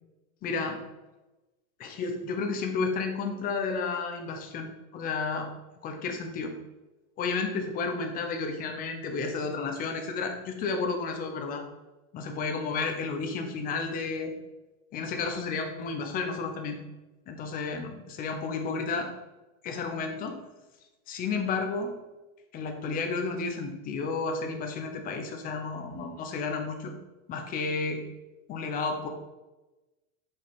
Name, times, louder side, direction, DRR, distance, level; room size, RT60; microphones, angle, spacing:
voice 1, 0.4-0.8 1.8-4.7 4.9-5.5 5.8-6.5 7.2-11.6 12.1-14.3 14.9-16.8 17.3-19.1 19.6-20.4 21.1-21.9 22.5-26.9 27.3-28.0 28.5-29.1, left 4 dB, 20° left, 4 dB, 0.8 m, -32 dB
7.4 x 5.4 x 5.7 m, 1.1 s
supercardioid pair, 175°, 42 cm